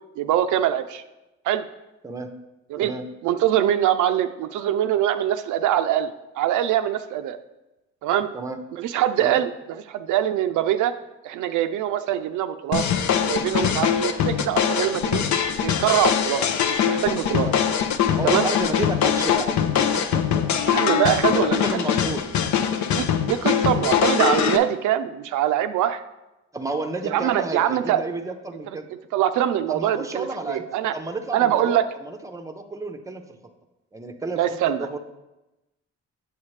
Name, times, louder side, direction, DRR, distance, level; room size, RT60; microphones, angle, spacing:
voice 1, 0.2-1.0 1.4-1.6 2.7-2.9 3.2-7.4 8.0-8.3 8.7-10.9 11.2-12.8 13.3-15.3 15.6-17.5 18.2-18.5 20.7-21.6 22.9-26.0 27.0-28.0 29.1-30.9 31.3-31.8 34.4-34.9, right 11 dB, 80° right, 9 dB, 0.5 m, -23 dB
sound 1, 12.7-24.6, left 8 dB, 70° left, 0.6 m, -22 dB
voice 2, 18.1-20.9 21.3-22.2 26.5-28.9 29.7-30.6 30.9-33.5 33.9-35.0, right 2 dB, 10° right, 6 dB, 0.6 m, -32 dB
7.3 x 7.0 x 3.2 m, 1.0 s
cardioid pair, 90°, 30 cm